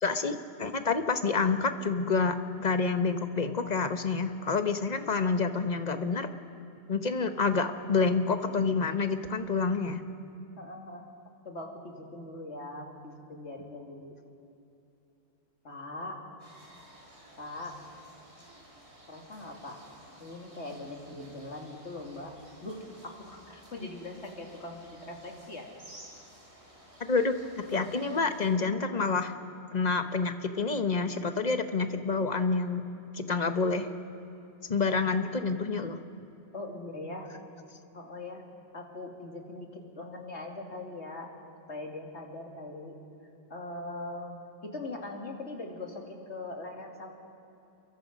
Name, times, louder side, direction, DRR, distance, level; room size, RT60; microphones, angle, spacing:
voice 1, 0.0-6.3 6.9-10.0 27.1-29.3 29.7-32.8 33.1-33.9 34.7-36.0, left 4 dB, 40° left, 8 dB, 1.2 m, -28 dB
voice 2, 10.6-11.0 11.4-14.2 15.6-16.2 17.4-17.8 19.1-19.8 20.2-25.7 36.5-37.3 37.9-38.4 38.7-41.3 41.7-42.9 43.5-47.1, left 2 dB, 90° left, 2 dB, 2.9 m, -41 dB
sound 1, 16.4-28.5, right 1 dB, 80° right, 5.6 m, -54 dB
28.5 x 23.0 x 5.3 m, 2.9 s
omnidirectional pair, 1.1 m